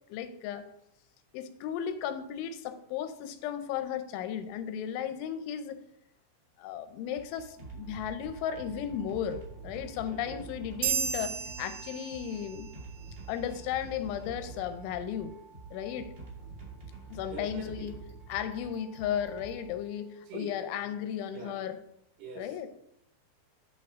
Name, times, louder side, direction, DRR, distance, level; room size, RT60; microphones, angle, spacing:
voice 1, 0.1-0.7 1.3-5.8 6.6-12.7 13.3-15.4 15.7-16.1 17.1-17.9 18.3-21.8 22.4-22.7, left 9 dB, 90° left, 10 dB, 3.1 m, -35 dB
sound 1, 7.0-20.2, right 4 dB, 30° right, 1.3 m, -47 dB
voice 2, 10.0-10.5 17.3-18.0 20.3-20.6 21.3-21.7 22.2-22.7, right 3 dB, 65° right, 0 dB, 3.4 m, -44 dB
sound 2, 10.8-12.7, right 8 dB, 85° right, 2.9 m, -33 dB
13.0 x 4.4 x 3.6 m, 0.75 s
omnidirectional pair, 5.3 m